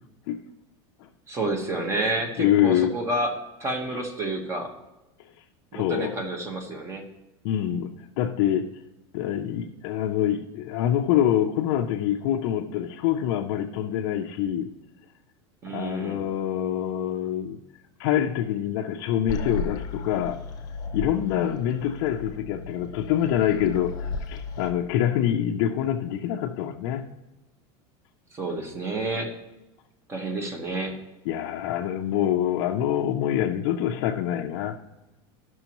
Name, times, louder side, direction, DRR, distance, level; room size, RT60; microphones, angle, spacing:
voice 1, 1.3-3.3 3.6-4.7 5.7-7.0 15.6-16.2 28.3-29.3 30.1-31.0, right 2 dB, 20° right, 3 dB, 1.2 m, -29 dB
voice 2, 2.4-2.9 3.9-4.0 5.7-6.2 7.4-8.7 9.1-14.7 15.7-17.6 18.0-20.4 20.9-27.1 31.3-34.8, left 10 dB, 55° left, 1 dB, 0.5 m, -25 dB
sound 1, 19.3-24.7, left 4 dB, 25° left, 0.9 m, -35 dB
14.0 x 6.2 x 3.0 m, 1.0 s
supercardioid pair, 160°, 14 cm